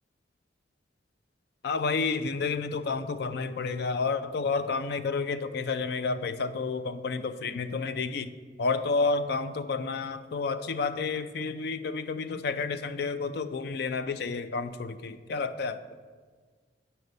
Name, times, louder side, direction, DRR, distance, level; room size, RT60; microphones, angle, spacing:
voice 1, 1.6-8.3 8.6-15.8, left 4 dB, 55° left, 12 dB, 0.4 m, -30 dB
8.0 x 4.4 x 5.2 m, 1.5 s
head